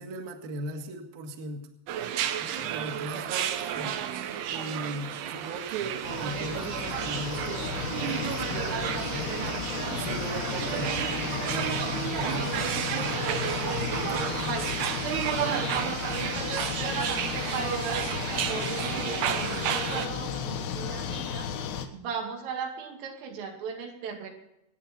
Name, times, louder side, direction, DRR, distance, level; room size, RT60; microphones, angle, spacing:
voice 1, 0.0-1.7 2.4-4.0 4.5-9.5 10.0-12.6 12.9-13.3 13.8-14.9, right 2 dB, 60° right, 4 dB, 2.9 m, -38 dB
sound 1, 1.9-20.1, right 10 dB, 75° right, 2.6 m, -32 dB
sound 2, 6.0-21.9, left 8 dB, 90° left, 4.0 m, -34 dB
voice 2, 16.2-21.5 21.9-24.3, right 6 dB, 90° right, 1 dB, 5.0 m, -37 dB
25.5 x 9.6 x 4.3 m, 0.83 s
omnidirectional pair, 5.6 m